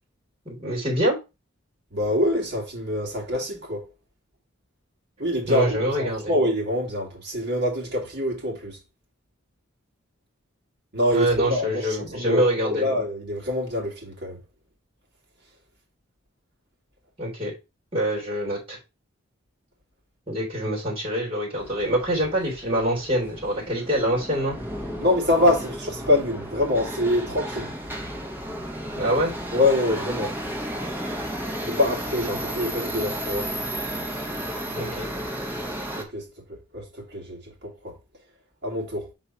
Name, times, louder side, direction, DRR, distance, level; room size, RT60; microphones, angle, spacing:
voice 1, 0.4-1.2 5.5-6.3 11.1-12.9 17.2-17.5 17.9-18.8 20.3-24.6 28.9-29.3 34.7-35.0, equal, 25° right, 3.4 m, -25 dB
voice 2, 1.9-3.9 5.2-8.8 10.9-14.4 25.0-27.7 29.5-30.4 31.6-33.5 35.9-37.9 38.6-39.1, left 1 dB, 55° right, 2.5 m, -25 dB
Subway metro underground, 21.6-36.0, equal, 10° right, 0.9 m, -33 dB
5.5 x 4.0 x 4.5 m
head